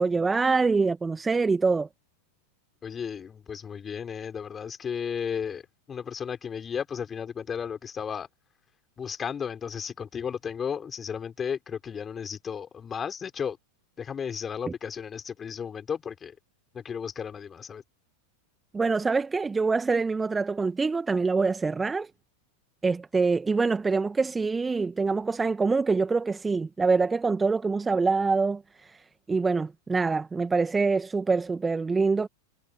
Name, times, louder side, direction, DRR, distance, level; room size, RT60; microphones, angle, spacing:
voice 1, 0.0-1.9 18.7-22.1 22.8-29.0 29.3-32.3, right 4 dB, 10° right, 1.7 m, -25 dB
voice 2, 2.8-5.6 5.9-8.3 9.0-13.6 14.0-16.3 16.7-17.8, left 7 dB, 20° left, 5.6 m, -34 dB
figure-of-eight pair, 90°, 0 cm